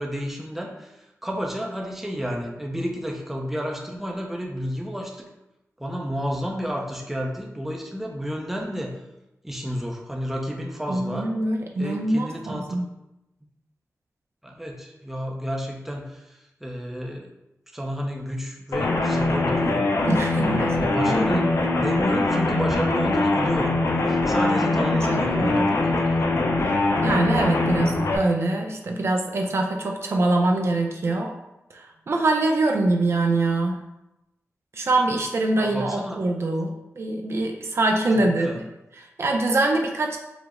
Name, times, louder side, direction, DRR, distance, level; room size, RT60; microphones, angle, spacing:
voice 1, 0.0-5.3 5.8-8.9 9.4-11.3 11.8-12.8 14.4-17.3 17.7-19.9 20.3-21.4 21.8-26.3 35.6-36.2 38.1-38.6, equal, 5° right, -1 dB, 0.5 m, -31 dB
voice 2, 10.9-12.8 20.1-21.5 24.4-25.8 26.6-31.3 31.7-33.8 34.7-38.6 39.0-40.2, right 2 dB, 55° right, 2 dB, 0.5 m, -24 dB
sound 1, 18.7-28.2, left 2 dB, 65° left, 0.5 m, -22 dB
4.9 x 2.0 x 3.6 m, 0.92 s
wide cardioid pair, 115°, 5 cm